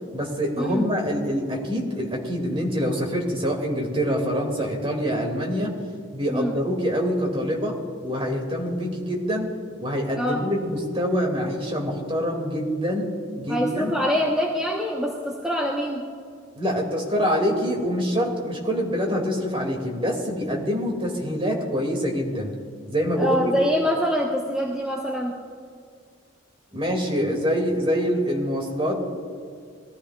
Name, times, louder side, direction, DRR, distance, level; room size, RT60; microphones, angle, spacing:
voice 1, 0.1-5.7 6.1-7.7 8.0-9.5 9.8-13.1 13.4-13.9 16.5-22.5 22.9-23.5 26.7-29.0, equal, 30° right, 0 dB, 2.5 m, -25 dB
voice 2, 13.5-16.0 23.2-25.4, equal, 5° right, -4 dB, 1.2 m, -24 dB
22.0 x 15.0 x 2.5 m, 2.2 s
head